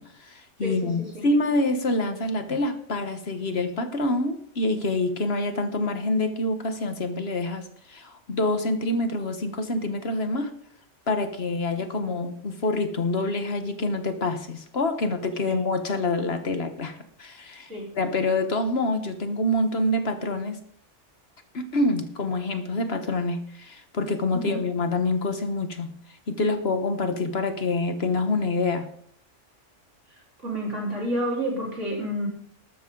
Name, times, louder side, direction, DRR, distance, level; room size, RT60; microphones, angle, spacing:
voice 1, 0.0-10.5 11.1-20.6 21.5-25.9 26.3-28.9, left 2 dB, 60° left, 8 dB, 1.5 m, -26 dB
voice 2, 0.6-1.3 11.9-12.1 15.5-15.6 17.7-17.9 24.3-24.6 30.4-32.3, equal, 80° right, -3 dB, 4.6 m, -30 dB
13.5 x 12.5 x 3.9 m, 0.62 s
omnidirectional pair, 1.2 m